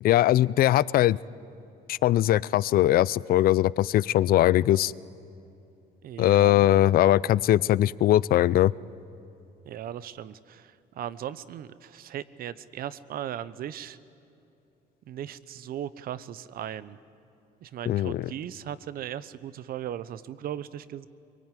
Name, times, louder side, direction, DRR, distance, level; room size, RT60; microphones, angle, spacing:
voice 1, 0.0-1.2 1.9-4.9 6.2-8.7 17.9-18.3, left 13 dB, 60° left, 21 dB, 0.5 m, -21 dB
voice 2, 6.0-6.7 9.7-14.0 15.1-17.0 17.6-21.1, right 10 dB, 60° right, 16 dB, 0.9 m, -37 dB
23.5 x 23.0 x 9.3 m, 2.8 s
cardioid pair, 110°, 17 cm